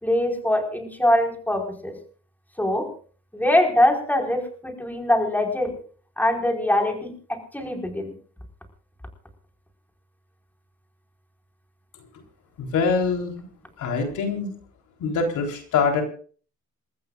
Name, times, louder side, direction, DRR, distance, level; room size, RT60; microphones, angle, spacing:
voice 1, 0.0-1.9 2.6-2.9 3.3-5.8 6.2-8.1, left 1 dB, 5° left, 2 dB, 4.8 m, -23 dB
voice 2, 12.6-13.4 13.8-14.5 15.0-16.0, left 5 dB, 80° left, 3 dB, 3.7 m, -24 dB
29.0 x 14.0 x 2.5 m, 0.42 s
cardioid pair, 90°, 30 cm